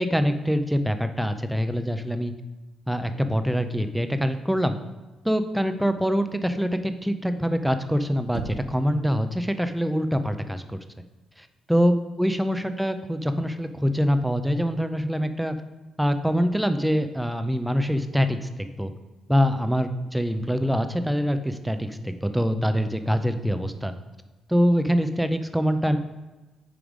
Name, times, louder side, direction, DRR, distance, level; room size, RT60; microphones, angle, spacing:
voice 1, 0.0-2.3 2.9-4.8 5.2-10.8 11.7-15.6 16.0-18.9 19.3-23.9 24.5-26.0, equal, 5° right, 9 dB, 0.5 m, -24 dB
Knock, 8.3-9.0, right 7 dB, 85° right, 0.4 m, -36 dB
8.8 x 3.3 x 5.1 m, 1.1 s
cardioid pair, 90°, 0 cm